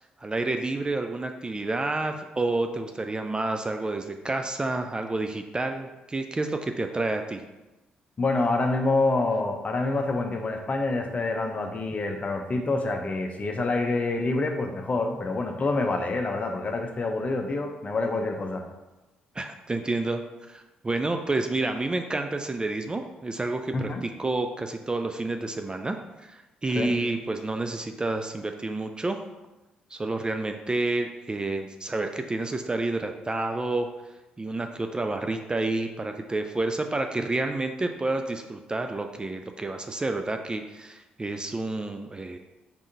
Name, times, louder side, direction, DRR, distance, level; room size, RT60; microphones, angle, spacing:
voice 1, 0.2-7.4 19.4-20.2 20.5-29.2 29.9-33.9 34.4-42.4, right 2 dB, 20° right, 5 dB, 0.3 m, -29 dB
voice 2, 8.2-18.6 23.7-24.0 26.7-26.9, left 3 dB, 35° left, 4 dB, 0.6 m, -27 dB
4.3 x 3.5 x 2.7 m, 1.1 s
figure-of-eight pair, 45°, 4 cm